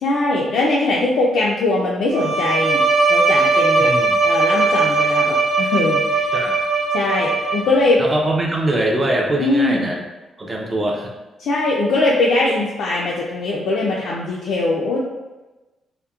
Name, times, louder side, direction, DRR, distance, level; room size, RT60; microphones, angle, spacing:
voice 1, 0.0-2.8 3.1-3.9 4.2-6.3 6.9-8.0 9.4-9.9 11.4-15.0, left 2 dB, 70° left, -4 dB, 0.3 m, -20 dB
Bowed string instrument, 2.1-7.9, right 3 dB, 65° right, 0.7 m, -18 dB
voice 2, 3.8-4.2 6.3-6.6 8.0-10.0 10.4-11.1, right 1 dB, 20° right, 0 dB, 0.3 m, -22 dB
2.9 x 2.0 x 2.2 m, 1.1 s
cardioid pair, 175°, 0 cm